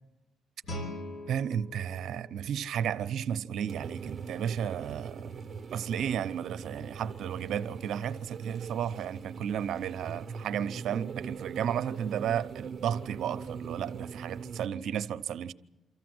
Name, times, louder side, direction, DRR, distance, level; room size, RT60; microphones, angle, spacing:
Guitar, 0.6-3.4, left 1 dB, 60° left, 3.6 m, -43 dB
voice 1, 1.3-5.4 5.7-15.5, right 9 dB, 70° right, 0.8 m, -33 dB
sound 1, 3.7-14.7, right 5 dB, 45° right, 0.9 m, -41 dB
25.0 x 14.5 x 7.9 m
cardioid pair, 90°, 0 cm